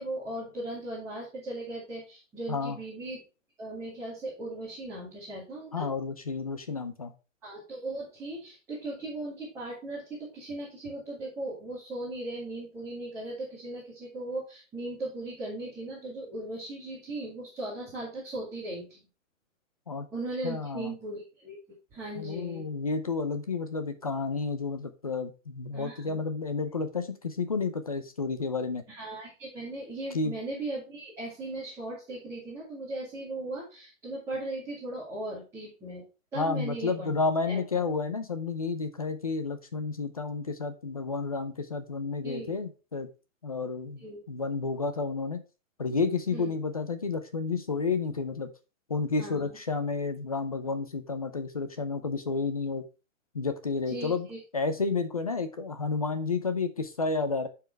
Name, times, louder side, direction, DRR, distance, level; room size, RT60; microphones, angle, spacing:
voice 1, 0.0-3.2 3.6-5.9 7.4-19.0 20.1-21.6 21.9-22.7 25.7-26.2 28.9-36.0 36.3-37.1 37.5-37.9 42.2-42.6 44.0-44.2 46.3-46.5 49.2-49.6 53.9-54.4, right 2 dB, 5° right, -9 dB, 2.3 m, -38 dB
voice 2, 5.7-7.1 19.9-20.1 20.4-20.9 22.2-28.8 30.1-30.3 36.4-43.1 43.4-45.4 45.8-48.5 48.9-52.8 53.3-54.3 54.5-57.5, left 4 dB, 30° left, 8 dB, 0.6 m, -31 dB
9.4 x 4.7 x 4.6 m, 0.32 s
hypercardioid pair, 180°, 40 cm